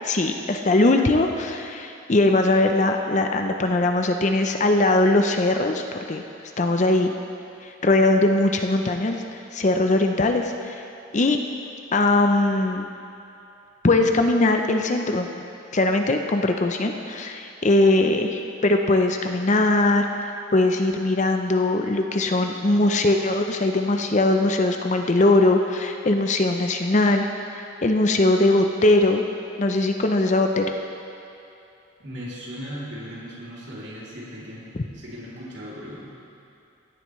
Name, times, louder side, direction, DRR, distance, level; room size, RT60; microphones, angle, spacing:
voice 1, 0.0-6.2 6.6-7.1 7.6-9.2 9.5-10.8 11.1-11.4 11.9-12.9 13.8-15.3 15.7-20.1 20.5-27.3 27.5-29.2 29.6-30.7, left 2 dB, 35° left, 5 dB, 0.5 m, -20 dB
voice 2, 32.0-34.7 34.9-36.1, equal, 55° right, -7 dB, 3.0 m, -37 dB
16.5 x 11.0 x 3.2 m, 2.7 s
head